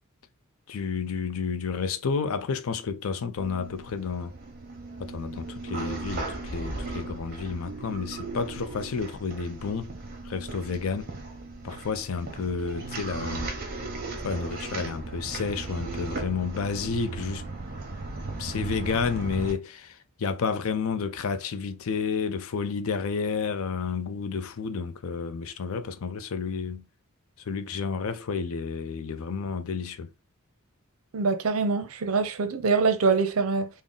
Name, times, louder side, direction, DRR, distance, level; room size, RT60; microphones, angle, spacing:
voice 1, 0.7-4.3 5.0-9.9 10.3-11.1 11.6-13.5 14.2-17.4 18.4-26.8 27.5-30.1, left 5 dB, 65° left, 0.4 m, -31 dB
sound 1, 3.4-19.5, right 3 dB, 40° right, 0.8 m, -37 dB
voice 2, 31.1-33.7, right 4 dB, 70° right, 0.6 m, -24 dB
3.7 x 2.0 x 3.8 m
head